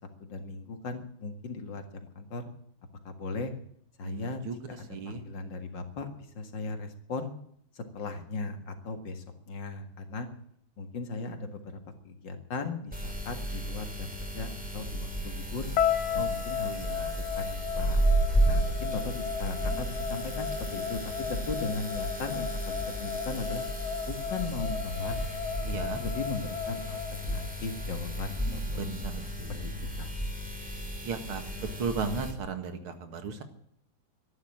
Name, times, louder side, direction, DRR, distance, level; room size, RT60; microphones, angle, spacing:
voice 1, 0.2-2.4 3.0-3.5 4.0-4.4 4.7-6.1 6.4-7.3 7.7-10.3 10.8-11.6 12.0-15.7 16.1-17.1 17.4-18.0 18.5-21.0 21.3-23.6 24.1-25.2 25.9-29.4 29.6-30.1, left 3 dB, 60° left, 7 dB, 2.5 m, -37 dB
voice 2, 4.0-4.6 4.9-5.2 16.1-16.3 16.6-17.1 25.6-26.0 28.7-29.7 31.0-33.4, right 5 dB, 80° right, 8 dB, 2.7 m, -36 dB
sound 1, 12.9-32.3, right 1 dB, 5° right, 3.2 m, -33 dB
sound 2, 15.8-27.9, left 7 dB, 75° left, 1.8 m, -34 dB
13.0 x 12.0 x 8.8 m, 0.67 s
omnidirectional pair, 2.3 m